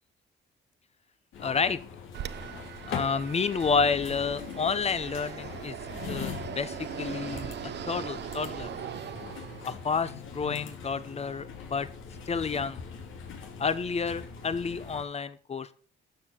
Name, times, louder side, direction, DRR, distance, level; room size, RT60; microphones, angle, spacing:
sound 1, 1.3-15.0, left 7 dB, 80° left, 2.9 m, -42 dB
voice 1, 1.4-1.8 2.9-5.8 6.0-8.7 9.7-11.9 12.3-12.8 13.6-15.7, left 5 dB, 30° left, 14 dB, 1.1 m, -30 dB
Fixed-wing aircraft airplane, 2.1-9.9, right 10 dB, 60° right, 0.9 m, -40 dB
12.5 x 7.4 x 6.0 m, 0.42 s
cardioid pair, 90°, 20 cm